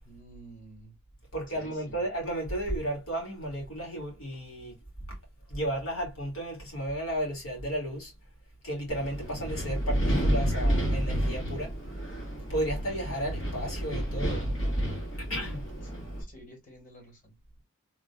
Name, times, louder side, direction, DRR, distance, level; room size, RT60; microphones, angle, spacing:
voice 1, 0.0-1.0 1.5-2.0 15.6-15.9 16.2-17.4, right 1 dB, 40° left, 2.3 m, -51 dB
voice 2, 1.3-4.7 5.1-5.2 5.5-8.1 8.6-11.7 12.5-14.5 15.2-15.6, right 1 dB, 85° left, 2.4 m, -33 dB
Wind, 8.9-16.2, equal, 70° left, 2.0 m, -30 dB
3.9 x 3.4 x 2.3 m
head